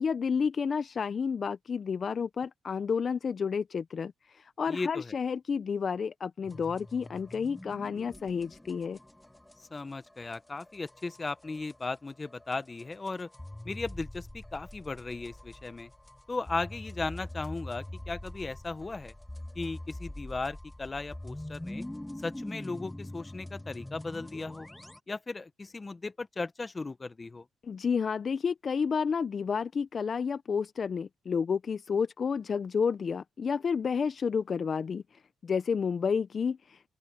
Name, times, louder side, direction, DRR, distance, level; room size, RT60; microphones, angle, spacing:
voice 1, 0.0-9.0 27.6-36.8, left 6 dB, 45° left, 0.6 m, -30 dB
voice 2, 4.7-5.1 9.7-13.3 13.6-15.9 16.3-19.1 19.5-21.8 22.2-24.7 25.1-27.5, left 3 dB, 25° left, 1.1 m, -36 dB
sound 1, 6.4-11.9 12.2-25.0, left 1 dB, 10° left, 1.6 m, -44 dB
open air
cardioid pair, 90°, 0 cm